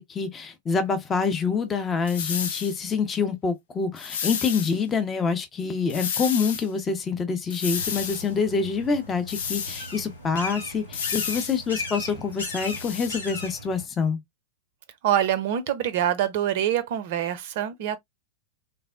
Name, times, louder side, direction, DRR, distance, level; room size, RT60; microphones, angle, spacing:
voice 1, 0.0-14.2, left 5 dB, 20° left, 0.6 m, -26 dB
sound 1, 2.1-2.8 4.0-4.7 5.9-6.7 7.5-8.3 9.3-9.9 10.9-11.6 12.4-13.1, left 7 dB, 60° left, 0.5 m, -31 dB
sound 2, 7.7-13.8, left 2 dB, 80° left, 0.9 m, -37 dB
voice 2, 15.0-18.0, right 10 dB, 50° right, 0.5 m, -25 dB
3.5 x 2.0 x 2.3 m
figure-of-eight pair, 90°, 0 cm